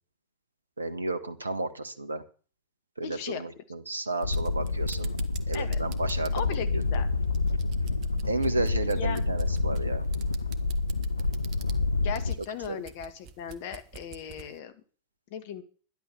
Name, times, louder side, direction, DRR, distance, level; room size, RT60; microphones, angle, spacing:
voice 1, 0.8-2.2 3.0-5.1 5.5-6.8 8.2-10.0 12.7-12.8, right 2 dB, 80° right, 11 dB, 1.5 m, -32 dB
voice 2, 3.0-3.4 5.5-5.8 6.3-7.1 8.9-9.2 12.0-14.7 15.3-15.6, left 8 dB, 50° left, 10 dB, 2.2 m, -37 dB
sound 1, 4.1-14.5, right 6 dB, 40° right, 1.5 m, -46 dB
sound 2, 4.2-12.3, left 3 dB, 80° left, 0.9 m, -28 dB
12.5 x 11.0 x 7.1 m, 0.42 s
figure-of-eight pair, 90°, 0 cm